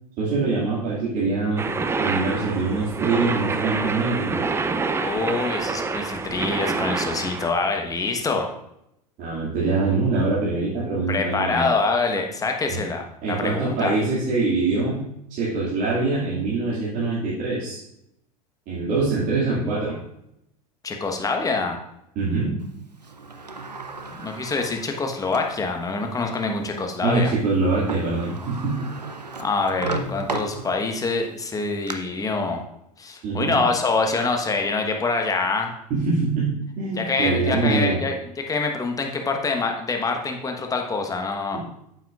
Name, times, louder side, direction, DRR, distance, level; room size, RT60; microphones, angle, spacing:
voice 1, 0.2-1.6 2.0-4.4 9.2-11.7 12.7-12.8 13.2-15.0 15.3-17.8 18.7-20.0 22.2-22.6 27.0-28.8 33.2-33.6 35.9-38.0, right 3 dB, 45° right, -8 dB, 2.4 m, -24 dB
sound 1, 1.6-7.5, right 4 dB, 10° right, 0.4 m, -27 dB
voice 2, 5.0-8.5 11.1-13.9 20.8-21.8 24.2-27.3 29.4-32.6 33.0-35.7 37.0-41.6, left 3 dB, 15° left, 3 dB, 1.2 m, -25 dB
Sliding door, 23.0-25.6 26.2-26.3 27.6-27.7 27.9-31.1 31.5-31.9, right 3 dB, 90° right, 0.6 m, -34 dB
9.0 x 7.8 x 2.5 m, 0.81 s
figure-of-eight pair, 75°, 20 cm